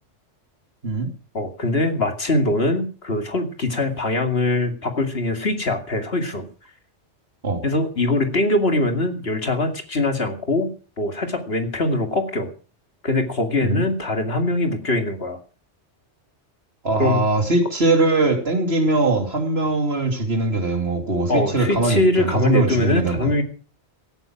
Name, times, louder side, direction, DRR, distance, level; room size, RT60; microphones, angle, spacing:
voice 1, 1.3-6.5 7.6-10.7 11.0-12.5 13.0-15.4 17.0-17.2 21.3-23.4, left 2 dB, 60° left, 6 dB, 2.6 m, -22 dB
voice 2, 16.8-23.3, right 2 dB, 60° right, 4 dB, 3.3 m, -21 dB
16.5 x 9.8 x 6.0 m, 0.37 s
omnidirectional pair, 1.2 m